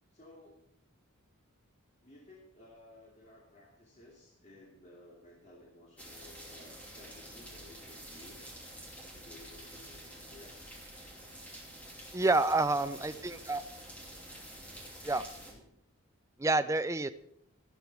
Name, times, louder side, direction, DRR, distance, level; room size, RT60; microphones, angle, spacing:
voice 1, 0.1-0.6 2.0-8.6 9.1-10.8 12.9-13.7 15.4-15.7, left 1 dB, 30° left, -4 dB, 2.6 m, -56 dB
sound 1, 6.0-15.5, right 1 dB, 5° left, 2.7 m, -49 dB
voice 2, 12.1-13.6 15.0-15.3 16.4-17.1, right 2 dB, 15° right, 10 dB, 0.5 m, -28 dB
12.5 x 12.5 x 4.6 m, 0.75 s
head